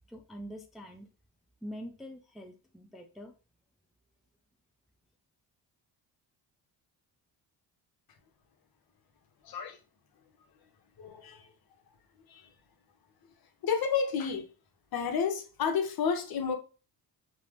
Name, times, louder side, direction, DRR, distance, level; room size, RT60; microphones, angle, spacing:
voice 1, 0.1-1.1 1.6-3.3, equal, ahead, 0.4 m, -44 dB
voice 2, 9.4-9.8 11.0-11.5 12.3-12.4 13.6-14.5 14.9-16.5, left 6 dB, 55° left, 0.7 m, -30 dB
2.8 x 2.0 x 3.1 m
supercardioid pair, 70°, 43 cm